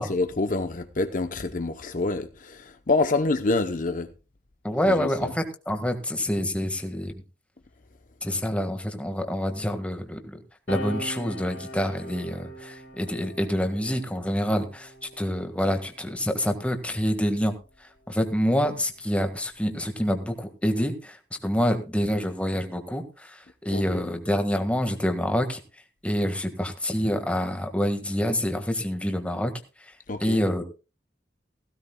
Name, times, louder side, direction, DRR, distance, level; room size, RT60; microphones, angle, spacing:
voice 1, 0.0-4.1 4.9-5.3 23.7-24.1 30.1-30.4, left 3 dB, 45° left, 0.7 m, -27 dB
voice 2, 4.6-7.1 8.2-10.4 10.7-14.9 15.2-17.5 18.1-25.6 26.0-29.5 30.2-30.6, equal, 5° left, 1.6 m, -27 dB
sound 1, 10.7-17.6 18.6-20.4, right 1 dB, 70° left, 3.9 m, -42 dB
16.5 x 16.0 x 2.2 m
head